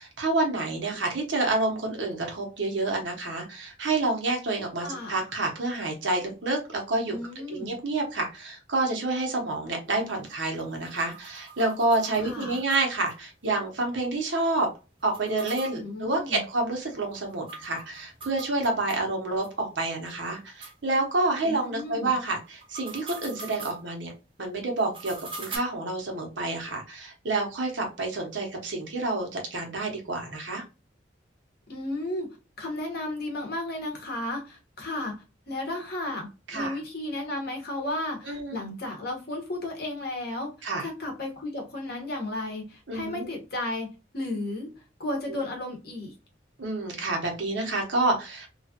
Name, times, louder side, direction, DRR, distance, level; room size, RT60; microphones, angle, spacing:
voice 1, 0.0-7.2 7.5-14.7 15.0-24.1 24.4-30.6 36.5-36.8 38.2-38.6 40.6-40.9 42.9-43.3 46.6-48.5, right 2 dB, 75° right, 1.1 m, -28 dB
voice 2, 4.8-5.2 7.1-7.7 12.2-12.6 15.7-16.4 21.5-22.1 31.7-32.3 32.6-35.2 35.5-40.5 40.8-43.9 44.1-44.7 45.0-46.1, left 1 dB, 55° left, 1.2 m, -33 dB
sound 1, 9.9-13.1 13.4-13.5 13.8-13.9 15.0-19.0 19.4-19.5 20.1-20.2 20.6-20.7 22.5-23.8 24.8-25.6, right 4 dB, 30° right, 0.8 m, -44 dB
3.1 x 2.4 x 2.8 m
head